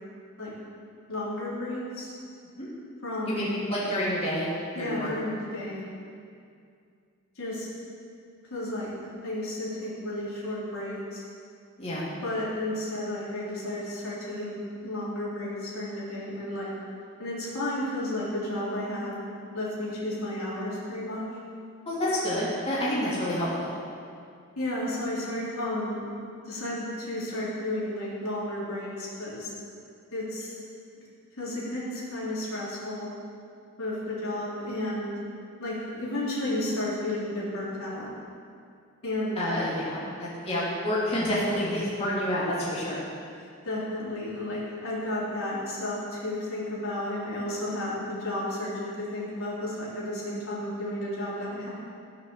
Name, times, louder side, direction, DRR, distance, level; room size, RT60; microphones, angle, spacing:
voice 1, 1.1-2.1 3.0-3.6 4.8-5.8 7.4-7.7 8.5-8.9 9.2-11.2 12.2-14.6 14.8-16.7 17.2-19.2 19.5-21.2 24.6-26.0 26.5-29.5 30.1-30.5 31.4-33.1 33.8-35.1 35.6-38.1 39.0-39.4 43.7-51.7, left 1 dB, 75° left, -7 dB, 3.6 m, -32 dB
voice 2, 3.2-4.5 4.8-5.3 5.6-5.7 11.8-12.1 21.9-23.7 39.4-43.0, left 1 dB, 30° left, -8 dB, 2.8 m, -28 dB
15.0 x 6.5 x 6.6 m, 2.3 s
head